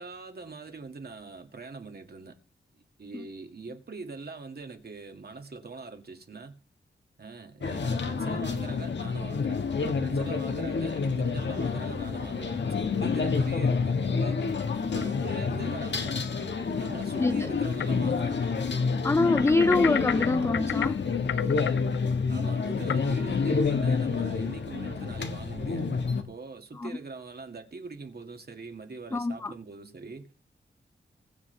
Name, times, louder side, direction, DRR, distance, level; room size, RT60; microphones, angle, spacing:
voice 1, 0.0-2.4 3.0-6.6 7.2-12.6 12.9-14.4 14.9-16.3 16.8-18.5 22.3-30.4, right 4 dB, 55° right, 2.3 m, -42 dB
sound 1, 7.6-26.2, left 5 dB, 65° left, 1.7 m, -28 dB
sound 2, 14.7-15.4 16.1-16.2 17.0-17.1 17.7-17.9 18.2-18.3 19.1-23.6, left 9 dB, 85° left, 0.6 m, -35 dB
voice 2, 19.0-21.0 26.7-26.9 29.1-29.5, left 2 dB, 15° left, 0.4 m, -25 dB
21.0 x 7.6 x 3.4 m
cardioid pair, 55°, 20 cm